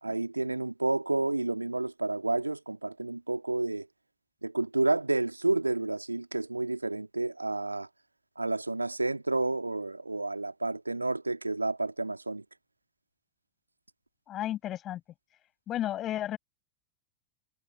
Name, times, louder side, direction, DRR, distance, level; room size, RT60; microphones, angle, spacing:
voice 1, 0.0-3.9 4.4-7.9 8.4-12.4, right 2 dB, 85° right, 2.1 m, -30 dB
voice 2, 14.3-15.0 15.7-16.4, left 12 dB, 30° left, 5.5 m, -32 dB
figure-of-eight pair, 90°, 0 cm